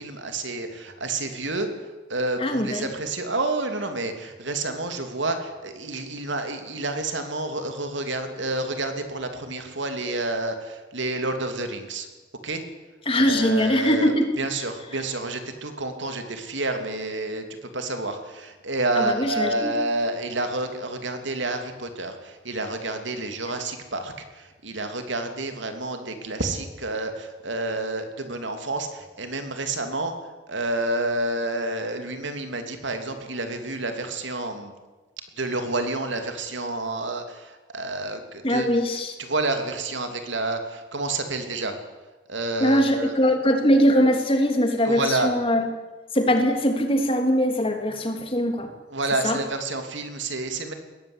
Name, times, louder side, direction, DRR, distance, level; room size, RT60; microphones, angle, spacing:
voice 1, 0.0-12.1 12.4-12.6 13.2-30.1 30.5-34.7 35.4-38.7 39.2-41.7 42.3-43.2 44.8-45.3 48.9-50.7, right 2 dB, 70° right, 6 dB, 3.1 m, -29 dB
voice 2, 2.4-2.9 13.1-14.3 19.0-19.7 38.4-39.1 42.6-45.7 46.1-48.7 49.2-49.4, equal, 30° left, 5 dB, 3.0 m, -21 dB
21.5 x 17.0 x 10.0 m, 1.2 s
head